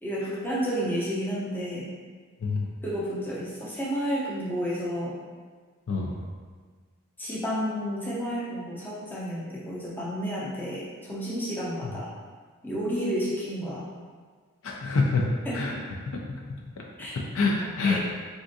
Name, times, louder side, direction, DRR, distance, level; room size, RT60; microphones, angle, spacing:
voice 1, 0.0-1.9 2.8-5.2 7.2-12.1 12.6-13.8 15.5-15.8 17.0-17.2 17.8-18.0, equal, 10° left, -7 dB, 0.6 m, -31 dB
voice 2, 5.9-6.2 11.8-11.9 14.6-15.7 16.1-16.2 16.8-16.9 17.1-18.0, left 3 dB, 65° left, -1 dB, 0.4 m, -26 dB
3.4 x 2.5 x 2.6 m, 1.5 s
head